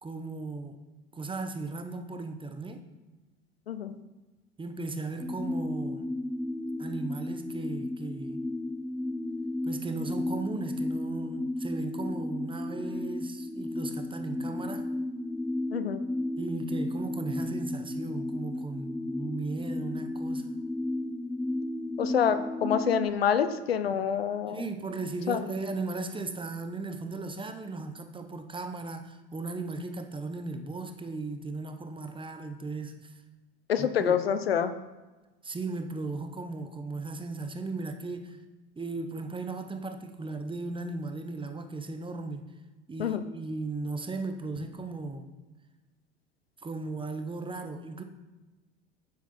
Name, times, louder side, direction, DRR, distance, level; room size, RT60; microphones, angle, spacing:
voice 1, 0.0-0.8 1.1-2.9 4.6-6.1 6.8-8.4 9.6-14.9 16.4-20.6 24.5-33.1 33.8-34.1 35.4-38.4 38.8-42.5 42.9-45.3 46.6-48.0, right 3 dB, 15° right, 7 dB, 1.1 m, -36 dB
sound 1, 5.2-23.1, left 1 dB, ahead, 0.3 m, -33 dB
voice 2, 22.0-24.6 25.3-25.4 33.7-34.7 43.0-43.2, left 8 dB, 90° left, 11 dB, 0.6 m, -27 dB
9.7 x 7.2 x 4.4 m, 1.2 s
hypercardioid pair, 70°, 29 cm